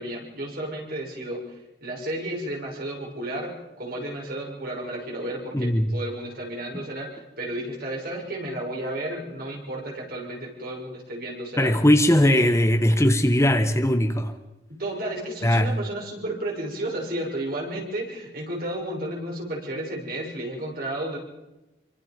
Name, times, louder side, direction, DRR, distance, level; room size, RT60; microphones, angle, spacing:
voice 1, 0.0-11.7 12.2-12.4 14.7-21.2, right 1 dB, 55° right, -1 dB, 6.9 m, -32 dB
voice 2, 5.5-5.9 11.6-14.3 15.4-15.7, left 1 dB, 15° left, 7 dB, 1.4 m, -19 dB
26.5 x 24.5 x 5.4 m, 0.98 s
head